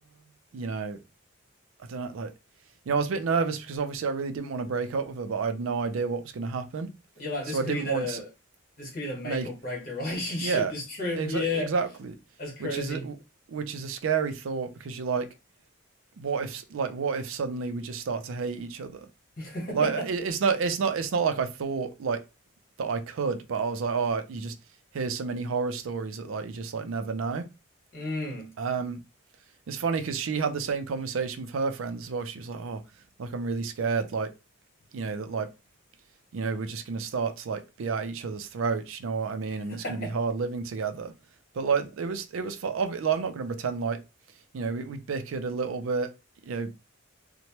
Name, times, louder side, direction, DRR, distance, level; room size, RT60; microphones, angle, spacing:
voice 1, 0.5-1.0 1.9-2.3 2.9-6.9 7.5-8.2 9.2-9.5 10.4-10.7 11.2-12.1 12.6-13.2 13.5-15.3 16.2-19.1 19.7-22.2 22.8-24.5 24.9-27.5 28.6-29.0 29.7-32.8 33.2-34.3 34.9-35.5 36.3-41.1 41.5-44.0 44.5-46.1 46.5-46.7, right 5 dB, 85° right, 0.4 m, -30 dB
voice 2, 7.2-8.3 8.8-11.7 12.4-13.1 19.4-20.1 27.9-28.5 39.7-40.2, left 2 dB, 45° left, 1.3 m, -33 dB
2.9 x 2.1 x 2.9 m
head